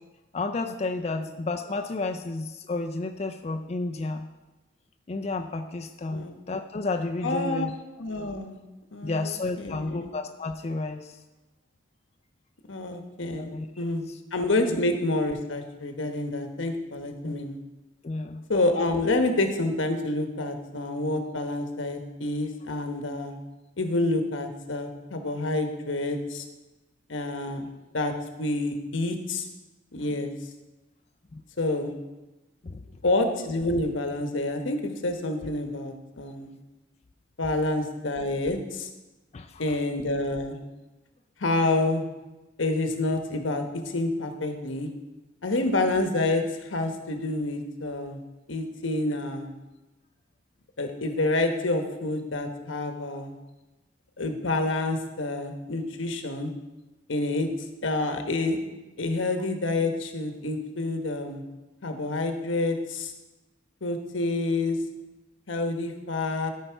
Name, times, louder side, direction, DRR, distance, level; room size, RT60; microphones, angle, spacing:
voice 1, 0.3-4.3 5.1-7.7 9.0-11.2 13.4-14.2 14.7-14.8 17.2-17.4 18.0-18.4 30.0-30.2 31.3-31.4 32.6-32.8 39.3-39.8, left 3 dB, 35° left, 5 dB, 0.4 m, -32 dB
voice 2, 7.2-7.7 8.0-8.6 8.9-10.1 12.7-17.6 18.5-23.4 23.8-26.4 27.1-27.7 27.9-28.1 28.4-29.5 29.9-30.3 31.6-31.9 33.0-36.5 37.4-38.9 39.6-40.6 41.4-42.0 42.6-44.9 45.4-48.2 48.5-49.5 50.8-53.3 54.2-56.5 57.1-57.5 57.8-58.6 59.0-61.4 61.8-63.1 63.8-64.8 65.5-66.5, left 2 dB, 85° left, 5 dB, 1.1 m, -28 dB
13.0 x 5.5 x 4.5 m, 1.1 s
head